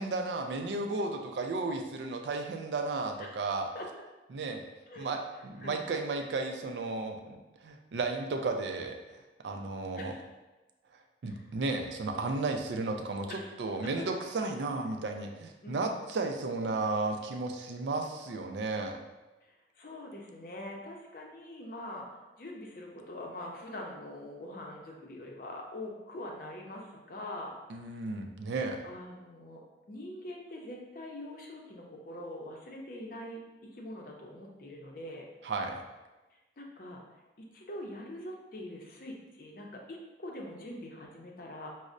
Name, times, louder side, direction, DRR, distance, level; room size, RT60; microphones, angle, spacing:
voice 1, 0.0-3.7 4.3-4.6 5.0-9.0 9.4-10.1 11.2-19.0 27.7-28.8 35.4-35.8, right 3 dB, 80° right, 4 dB, 0.4 m, -34 dB
voice 2, 15.6-15.9 19.4-27.6 28.8-29.6 29.9-35.3 36.6-37.0 37.5-41.7, left 1 dB, 50° left, -1 dB, 0.5 m, -43 dB
5.1 x 2.0 x 2.5 m, 1.1 s
head